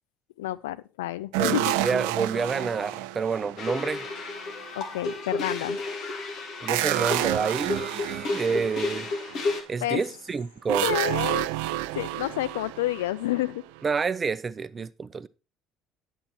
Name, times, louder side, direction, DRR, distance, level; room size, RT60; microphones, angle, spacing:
voice 1, 0.4-1.7 4.8-5.8 9.8-10.0 10.8-11.5 11.9-13.6, left 15 dB, 75° left, 0.5 m, -29 dB
sound 1, 1.3-4.3 6.7-9.4 10.7-13.8, right 15 dB, 70° right, 0.5 m, -30 dB
voice 2, 1.4-4.1 6.6-9.1 9.7-10.9 13.8-15.3, right 5 dB, 30° right, 0.7 m, -28 dB
sound 2, 3.6-9.6, left 3 dB, 55° left, 2.4 m, -32 dB
11.0 x 7.6 x 4.5 m
hypercardioid pair, 60°, 0 cm